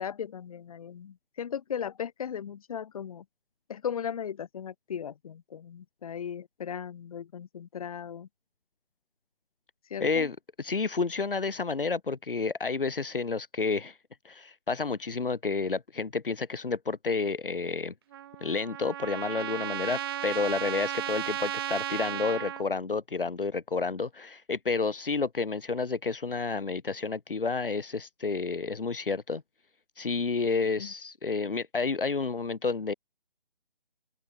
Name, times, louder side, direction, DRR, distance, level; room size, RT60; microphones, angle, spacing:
voice 1, 0.0-3.3 3.7-8.3 9.9-10.3 30.8-30.9, left 8 dB, 40° left, 5.7 m, -37 dB
voice 2, 10.0-14.0 14.2-17.9 18.4-29.4 30.0-32.9, left 4 dB, 65° left, 3.1 m, -30 dB
Trumpet, 18.1-22.6, right 12 dB, 25° right, 2.4 m, -34 dB
open air
figure-of-eight pair, 150°, 29 cm